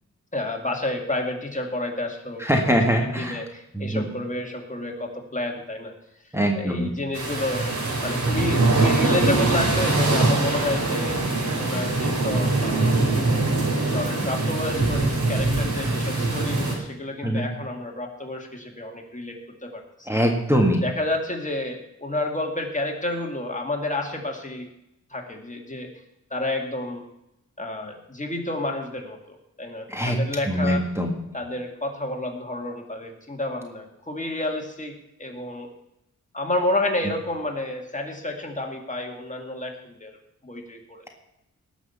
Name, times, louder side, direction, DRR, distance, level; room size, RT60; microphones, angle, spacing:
voice 1, 0.3-5.9 6.5-7.7 8.0-11.2 11.6-13.0 13.8-20.1 20.8-24.7 25.1-25.9 26.3-27.0 27.6-30.8 31.3-35.7 36.3-40.2 40.4-41.1, left 1 dB, 25° left, 2 dB, 2.3 m, -30 dB
voice 2, 2.5-3.4 3.8-4.0 6.3-6.9 17.2-17.4 20.1-20.8 29.9-30.2 30.5-31.1, equal, 10° right, 2 dB, 1.8 m, -22 dB
sound 1, 7.1-16.7, right 2 dB, 65° right, 3.6 m, -23 dB
18.5 x 6.3 x 7.1 m, 0.84 s
wide cardioid pair, 90°, 30 cm